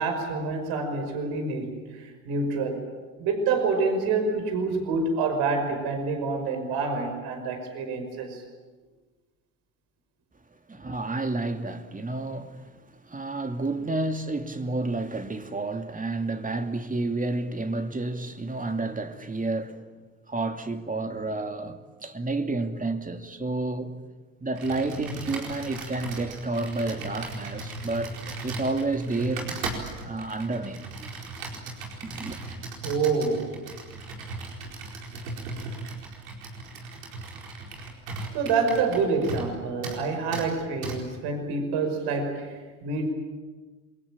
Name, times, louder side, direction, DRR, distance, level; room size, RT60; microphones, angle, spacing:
voice 1, 0.0-2.9 3.2-8.4 32.8-33.5 34.6-34.7 38.3-43.1, right 4 dB, 70° right, 5.7 m, -27 dB
voice 2, 10.7-19.8 20.3-24.0 24.4-28.1 28.4-29.5 30.0-31.1 32.0-32.4, right 2 dB, 20° right, 2.7 m, -30 dB
Computer keyboard, 24.5-39.5 39.8-40.0 40.3-40.5 40.8-41.0, right 3 dB, 90° right, 4.6 m, -37 dB
28.0 x 22.5 x 8.9 m
hypercardioid pair, 65°, 40 cm